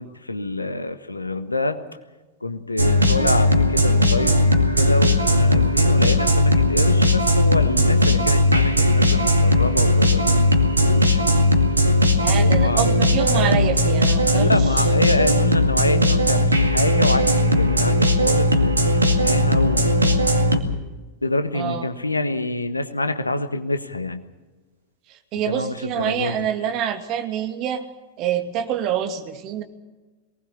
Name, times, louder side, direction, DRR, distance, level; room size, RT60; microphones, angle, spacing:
voice 1, 0.0-1.8 2.4-11.6 12.4-13.7 14.3-20.1 21.2-24.2 25.4-26.5, left 2 dB, 80° left, 9 dB, 1.6 m, -26 dB
sound 1, 2.8-20.6, left 1 dB, 80° right, 2.2 m, -18 dB
voice 2, 12.1-14.8 21.5-21.9 25.1-27.8 28.2-29.6, right 9 dB, 40° right, 7 dB, 2.4 m, -26 dB
23.0 x 19.5 x 7.3 m, 1.2 s
figure-of-eight pair, 90°, 0 cm